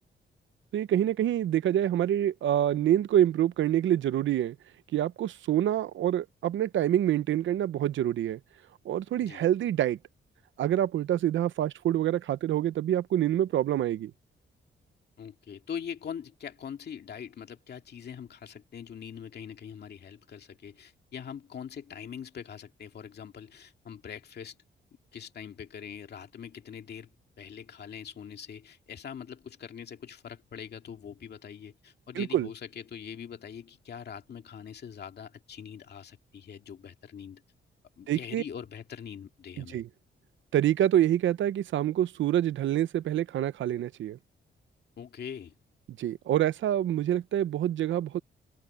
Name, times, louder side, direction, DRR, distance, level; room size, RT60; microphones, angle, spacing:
voice 1, 0.7-4.6 4.9-8.4 8.8-10.0 10.6-14.1 32.1-32.5 38.1-38.4 39.6-39.9 40.5-44.2 46.0-48.2, right 11 dB, 85° right, 0.8 m, -26 dB
voice 2, 15.2-24.5 25.1-27.1 27.4-37.4 38.0-39.8 45.0-45.5, left 7 dB, 60° left, 2.3 m, -43 dB
cardioid pair, 115°, 19 cm